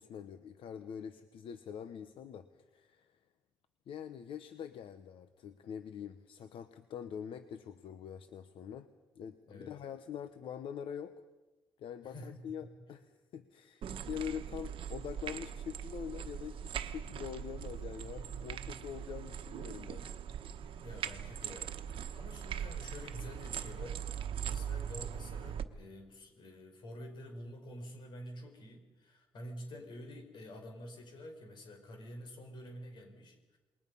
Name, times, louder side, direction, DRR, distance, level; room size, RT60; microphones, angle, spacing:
voice 1, 0.0-3.2 3.9-8.9 9.1-11.1 11.8-20.0, left 8 dB, 85° left, 10 dB, 0.9 m, -44 dB
voice 2, 12.0-12.7 20.8-33.6, equal, 60° left, 4 dB, 5.0 m, -49 dB
sound 1, 13.8-25.7, right 9 dB, 75° right, 1.1 m, -41 dB
28.0 x 21.5 x 5.5 m, 1.2 s
wide cardioid pair, 165°, 9 cm